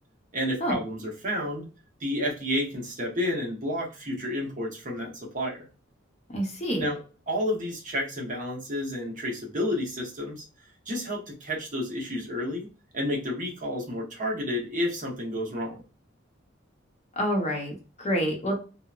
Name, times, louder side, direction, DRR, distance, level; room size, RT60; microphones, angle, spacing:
voice 1, 0.3-1.7 2.0-5.7 6.8-7.0 7.3-10.4 10.9-12.7 12.9-15.8, left 1 dB, 40° right, -2 dB, 1.0 m, -30 dB
voice 2, 6.3-6.9 17.2-18.6, equal, 35° left, 1 dB, 0.8 m, -28 dB
2.9 x 2.0 x 2.4 m, 0.33 s
head